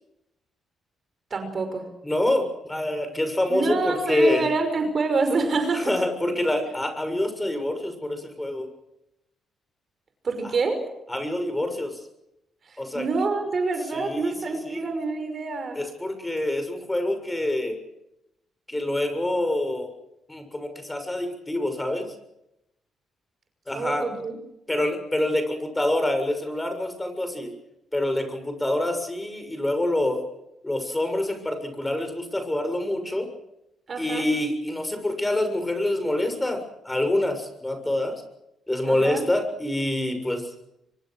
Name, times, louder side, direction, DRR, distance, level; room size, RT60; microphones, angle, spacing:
voice 1, 1.3-1.9 3.5-5.9 10.2-10.8 12.7-15.8 23.7-24.3 33.9-34.3 38.9-39.2, right 3 dB, 45° right, 7 dB, 5.7 m, -26 dB
voice 2, 2.0-4.5 5.7-8.7 11.1-12.0 12.8-13.1 13.9-14.8 15.7-17.8 18.7-19.9 20.3-22.1 23.7-24.1 24.7-27.5 27.9-30.2 30.6-33.3 34.0-38.2 38.7-40.5, left 1 dB, 10° left, 7 dB, 6.8 m, -26 dB
25.0 x 24.5 x 6.5 m, 0.84 s
cardioid pair, 90°, 0 cm